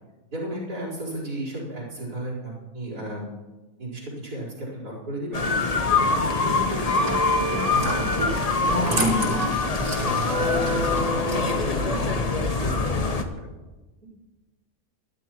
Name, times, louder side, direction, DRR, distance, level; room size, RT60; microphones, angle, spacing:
voice 1, 0.3-3.3 3.8-13.5, right 1 dB, 85° right, -3 dB, 5.2 m, -34 dB
sound 1, 5.3-13.2, left 3 dB, 30° left, 0.9 m, -24 dB
sound 2, 6.6-11.9, left 1 dB, 55° left, 6.0 m, -32 dB
sound 3, 6.7-11.9, equal, 50° right, 3.7 m, -32 dB
24.5 x 12.0 x 3.1 m, 1.2 s
omnidirectional pair, 1.6 m